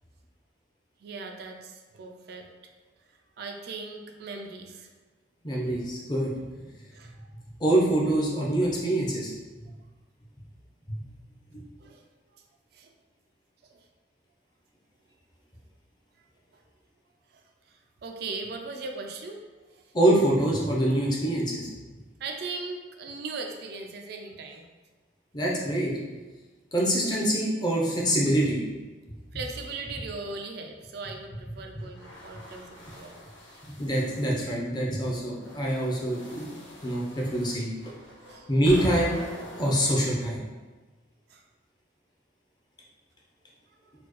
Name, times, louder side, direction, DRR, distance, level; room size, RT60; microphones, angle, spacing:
voice 1, 1.0-2.5 3.4-4.9 6.9-7.2 11.8-12.0 12.7-12.9 13.7-13.8 16.5-16.6 17.3-17.4 17.7-19.4 19.7-19.8 22.2-24.7 29.3-33.2 38.2-38.6 41.3-41.4, right 3 dB, 55° right, 3 dB, 0.3 m, -39 dB
voice 2, 5.4-6.3 7.6-9.3 11.5-11.6 19.9-21.7 25.3-25.9 26.7-28.6 33.8-36.5 36.8-37.7 38.5-39.2 39.6-40.4, right 1 dB, 20° left, -4 dB, 0.6 m, -25 dB
sound 1, 31.8-34.4 35.0-39.9, left 1 dB, 85° left, 0.9 m, -44 dB
4.3 x 2.3 x 3.0 m, 1.3 s
head